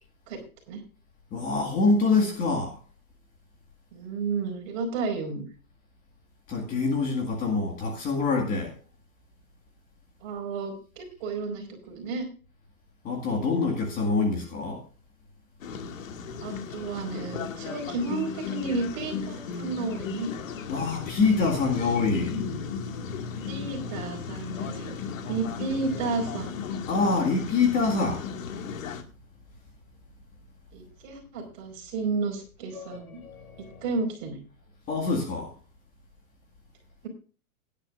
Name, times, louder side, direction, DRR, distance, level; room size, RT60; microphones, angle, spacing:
voice 1, 1.3-2.7 6.5-8.7 13.0-14.8 20.7-22.3 26.9-28.2 34.9-35.5, left 4 dB, 20° left, 1 dB, 2.0 m, -25 dB
voice 2, 3.9-5.4 10.2-12.3 16.4-20.3 23.4-24.9 25.3-26.5 30.7-33.2 33.8-34.4, right 4 dB, 35° right, 3 dB, 4.7 m, -32 dB
sound 1, 15.6-29.0, left 6 dB, 60° left, 2.1 m, -36 dB
sound 2, 20.6-29.4 32.7-34.0, left 5 dB, 80° left, 5.6 m, -41 dB
17.0 x 10.5 x 2.5 m, 0.37 s
hypercardioid pair, 165°, 44 cm